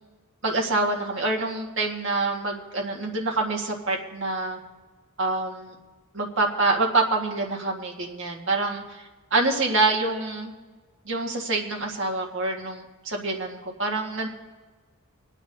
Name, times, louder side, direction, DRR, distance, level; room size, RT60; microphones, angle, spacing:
voice 1, 0.4-4.6 5.2-5.7 6.1-9.0 9.3-10.5 11.1-14.3, right 3 dB, 60° right, 0 dB, 1.7 m, -26 dB
25.5 x 9.3 x 2.7 m, 1.3 s
head